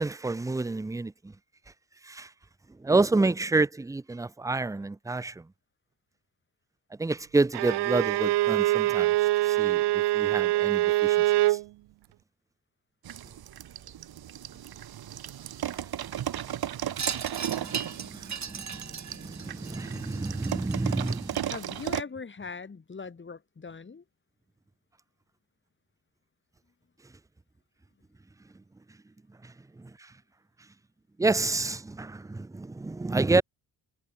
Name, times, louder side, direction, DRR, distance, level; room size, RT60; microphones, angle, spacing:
voice 1, 0.0-1.3 2.0-2.3 2.8-5.5 7.0-11.6 17.5-21.4 29.4-30.1 31.2-33.4, right 3 dB, 10° right, 0.6 m, -29 dB
Bowed string instrument, 7.5-11.6, right 17 dB, 85° right, 1.3 m, -24 dB
sound 1, 13.0-22.0, right 11 dB, 65° right, 4.1 m, -36 dB
Wind chime, 17.0-21.6, right 7 dB, 45° right, 6.1 m, -37 dB
voice 2, 21.5-24.0, left 5 dB, 30° left, 4.5 m, -40 dB
cardioid pair, 100°, 40 cm